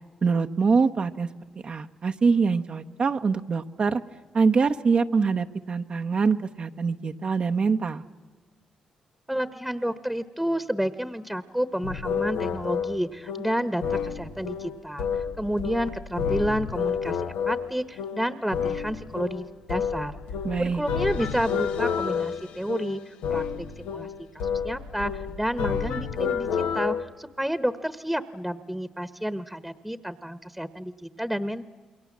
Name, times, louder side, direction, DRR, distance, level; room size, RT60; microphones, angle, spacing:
voice 1, 0.2-1.3 1.6-4.0 4.3-8.0 20.4-20.8, right 5 dB, 50° right, 7 dB, 0.9 m, -24 dB
voice 2, 9.3-20.2 20.6-31.7, equal, 5° right, 13 dB, 1.1 m, -30 dB
sound 1, 11.8-27.0, left 6 dB, 90° left, 1.0 m, -30 dB
28.0 x 22.0 x 7.4 m, 1.5 s
supercardioid pair, 60°, 2 cm